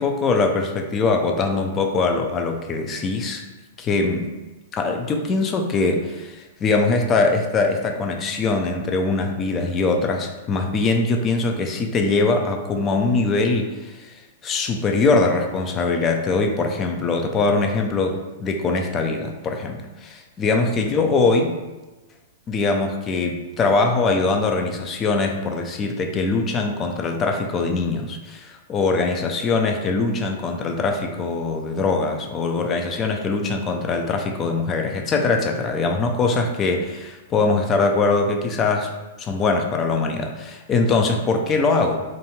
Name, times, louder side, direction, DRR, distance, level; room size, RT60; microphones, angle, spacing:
voice 1, 0.0-3.4 3.8-4.3 4.7-14.2 14.4-21.6 22.5-38.9 39.2-42.0, left 3 dB, 25° left, 3 dB, 0.4 m, -22 dB
2.5 x 2.3 x 3.0 m, 1.1 s
hypercardioid pair, 110°, 0 cm